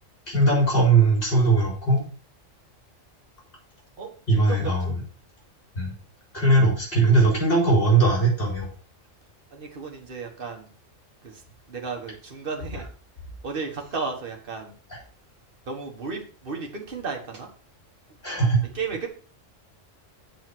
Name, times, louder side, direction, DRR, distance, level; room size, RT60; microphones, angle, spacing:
voice 1, 0.3-2.0 4.3-4.9 5.7-5.9 6.3-8.7 14.9-15.0 18.2-18.7, right 3 dB, 45° left, -3 dB, 4.4 m, -20 dB
voice 2, 4.0-4.9 9.5-10.7 11.2-11.4 11.7-12.9 13.4-14.7 15.7-17.5 18.7-19.1, right 4 dB, 45° right, 2 dB, 1.6 m, -34 dB
7.8 x 4.0 x 6.0 m, 0.40 s
omnidirectional pair, 1.3 m